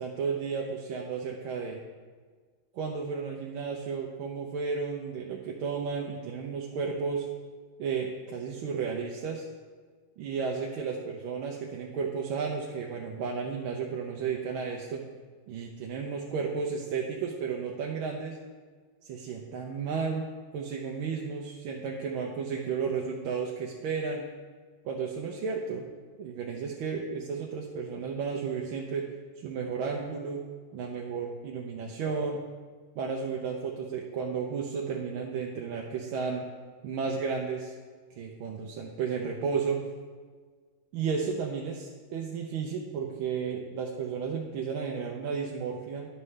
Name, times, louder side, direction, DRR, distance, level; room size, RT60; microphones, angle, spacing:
voice 1, 0.0-1.8 2.7-7.3 7.8-9.5 10.2-15.0 15.5-18.4 19.0-20.2 20.5-24.2 24.8-25.8 26.2-29.0 29.4-30.4 30.7-32.4 33.0-36.4 36.8-37.7 38.2-39.8 40.9-46.1, right 5 dB, 85° right, -1 dB, 1.5 m, -33 dB
11.0 x 5.6 x 3.2 m, 1.5 s
omnidirectional pair, 2.3 m